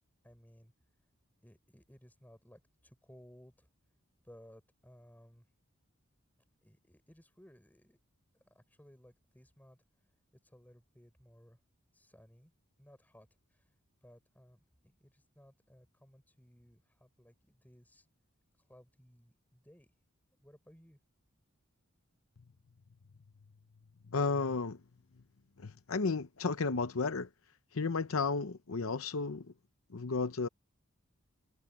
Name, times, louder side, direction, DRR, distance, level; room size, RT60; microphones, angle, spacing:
voice 1, 0.2-0.7 1.4-3.7 4.2-5.4 6.6-8.0 8.4-9.8 10.4-11.6 11.9-12.5 12.8-13.7 14.0-18.1 18.7-19.9 20.4-21.0, equal, 10° left, 6.0 m, -60 dB
voice 2, 24.1-24.8 25.6-27.3 27.7-29.4 29.9-30.5, left 4 dB, 75° left, 0.8 m, -33 dB
head